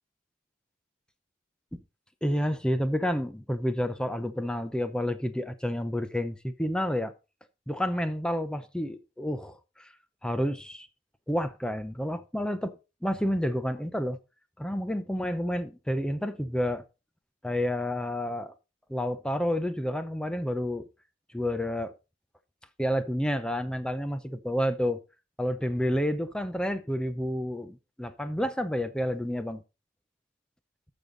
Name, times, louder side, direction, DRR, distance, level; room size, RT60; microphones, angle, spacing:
voice 1, 2.2-7.1 7.7-9.9 10.2-10.9 11.3-12.7 13.0-14.2 14.6-16.8 17.4-18.5 18.9-20.9 21.3-21.9 22.8-25.0 25.4-29.6, equal, 5° left, 0.6 m, -29 dB
13.5 x 5.3 x 3.9 m
head